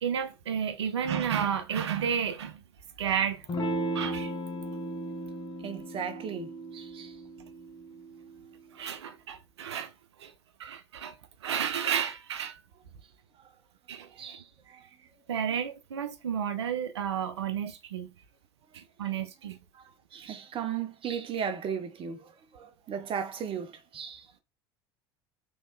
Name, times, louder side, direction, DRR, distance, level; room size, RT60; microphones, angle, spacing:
voice 1, 0.0-2.6 3.0-3.5 3.9-4.4 8.7-9.9 10.2-10.3 10.6-12.6 13.9-14.4 15.3-18.1 18.7-19.6, right 8 dB, 80° right, 0.6 m, -32 dB
Electric guitar / Strum, 3.5-8.6, right 1 dB, 30° left, 1.2 m, -36 dB
voice 2, 5.6-7.2 13.4-13.5 14.1-14.9 19.7-24.3, right 7 dB, 40° right, 0.9 m, -36 dB
3.5 x 3.2 x 3.9 m
hypercardioid pair, 70°, 14 cm